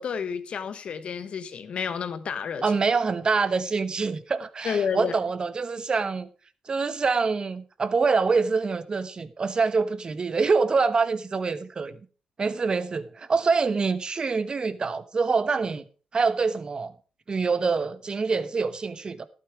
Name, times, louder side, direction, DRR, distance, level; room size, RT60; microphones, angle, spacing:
voice 1, 0.0-2.6 4.6-5.1, left 6 dB, 65° left, 1.2 m, -30 dB
voice 2, 2.6-6.3 6.7-12.0 12.4-15.8 16.1-16.9 17.3-19.3, right 4 dB, 45° right, 1.1 m, -25 dB
12.0 x 8.7 x 4.8 m
supercardioid pair, 60°, 2 cm